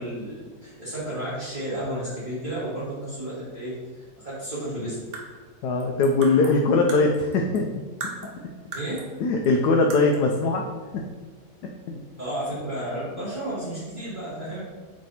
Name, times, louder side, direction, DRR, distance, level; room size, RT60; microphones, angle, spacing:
voice 1, 0.0-3.8 4.2-5.0 8.7-9.0 12.2-14.6, right 1 dB, 30° right, -11 dB, 2.0 m, -32 dB
sound 1, 4.9-7.7 8.0-9.2 9.4-9.5 9.9-10.3, right 3 dB, 70° right, 1.6 m, -38 dB
voice 2, 5.6-7.8 9.2-10.6 10.9-11.0 11.9-12.0, left 3 dB, 75° left, 2 dB, 1.2 m, -21 dB
8.3 x 3.4 x 4.1 m, 1.4 s
omnidirectional pair, 1.9 m